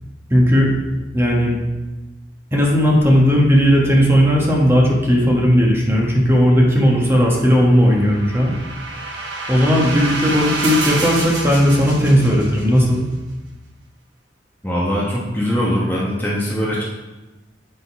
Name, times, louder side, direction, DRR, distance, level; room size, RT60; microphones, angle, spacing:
voice 1, 0.3-0.7 1.1-1.5 2.5-8.5 9.5-13.0, equal, 15° right, -2 dB, 1.3 m, -15 dB
sound 1, 7.6-12.8, right 3 dB, 75° right, 1.2 m, -27 dB
voice 2, 14.6-16.8, equal, 10° left, -5 dB, 1.0 m, -21 dB
8.4 x 3.9 x 4.6 m, 1.1 s
head